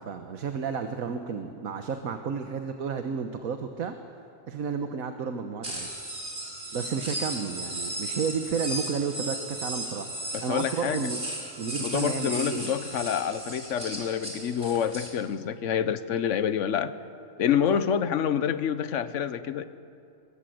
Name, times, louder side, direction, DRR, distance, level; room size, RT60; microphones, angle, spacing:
voice 1, 0.0-3.9 4.5-5.9 6.7-11.2 11.6-12.8 17.7-17.8, right 6 dB, 85° right, 7 dB, 1.6 m, -32 dB
sound 1, 5.6-15.1, right 1 dB, 50° right, 5.5 m, -35 dB
voice 2, 10.3-11.1 11.8-16.9 17.4-19.6, left 8 dB, 65° left, 12 dB, 1.2 m, -27 dB
27.0 x 22.5 x 7.8 m, 2.7 s
omnidirectional pair, 1.4 m